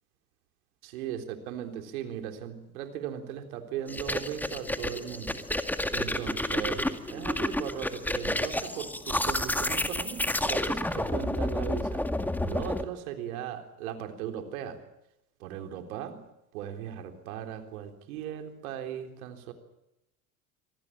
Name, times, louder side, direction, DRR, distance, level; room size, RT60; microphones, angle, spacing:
voice 1, 0.8-5.4 5.9-12.0 12.5-14.8 15.4-16.2 16.5-19.5, right 9 dB, 75° right, 6 dB, 3.8 m, -38 dB
sound 1, 3.9-12.8, left 1 dB, 5° left, 2.0 m, -30 dB
26.0 x 19.0 x 8.7 m, 0.88 s
hypercardioid pair, 90°, 43 cm